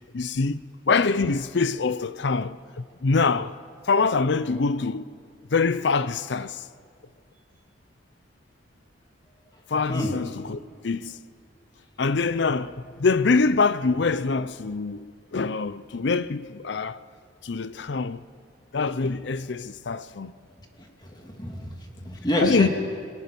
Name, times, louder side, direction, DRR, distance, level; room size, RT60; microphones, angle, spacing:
voice 1, 0.1-0.6 0.9-3.6 3.9-5.1 5.5-6.7 9.7-11.2 12.0-17.0 17.4-18.2 18.7-20.3 22.4-22.7, left 4 dB, 65° left, 0.6 m, -24 dB
voice 2, 20.8-22.7, equal, 20° left, 2.7 m, -28 dB
28.5 x 21.5 x 7.0 m
head